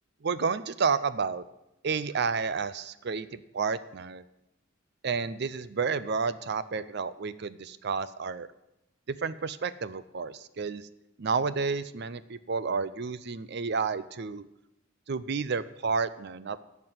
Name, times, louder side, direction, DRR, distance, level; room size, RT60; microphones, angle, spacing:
voice 1, 0.2-1.4 1.8-4.2 5.0-8.5 9.1-10.9 11.2-14.5 15.1-16.6, right 5 dB, 55° right, 15 dB, 0.5 m, -31 dB
12.0 x 5.9 x 9.3 m, 0.89 s
head